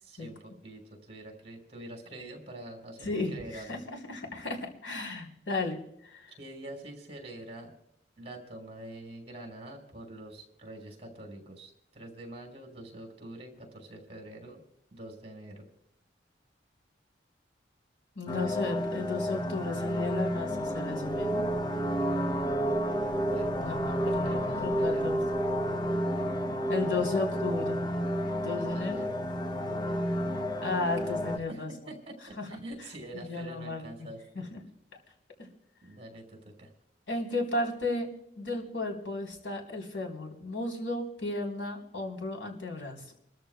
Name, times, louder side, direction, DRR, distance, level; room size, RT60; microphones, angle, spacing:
voice 1, 0.0-3.8 6.4-7.7 8.2-14.6 14.9-15.7 23.2-23.6 24.2-25.1 26.8-27.0 28.5-29.2 31.3-34.5 35.8-36.7, right 1 dB, 30° right, 0 dB, 4.8 m, -45 dB
voice 2, 3.0-3.8 4.1-5.8 6.0-6.3 18.2-21.5 23.6-25.2 26.7-27.8 28.4-29.0 30.6-31.7 32.4-32.6 33.1-33.9 34.4-34.6 35.4-35.5 37.1-38.1 38.4-43.0, left 3 dB, 85° left, 1 dB, 3.6 m, -34 dB
sound 1, 18.3-31.4, equal, 20° left, 0.8 m, -30 dB
29.0 x 13.5 x 2.3 m, 0.76 s
head